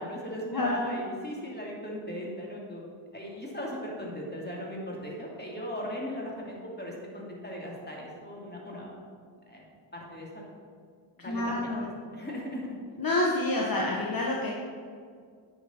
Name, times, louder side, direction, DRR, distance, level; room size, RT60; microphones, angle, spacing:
voice 1, 0.0-9.0 9.5-10.3 11.2-12.7, equal, 20° left, -3 dB, 2.6 m, -38 dB
voice 2, 11.3-11.9 13.0-14.5, left 2 dB, 45° left, -3 dB, 1.3 m, -28 dB
9.9 x 6.5 x 4.4 m, 2.1 s
cardioid pair, 60°, 48 cm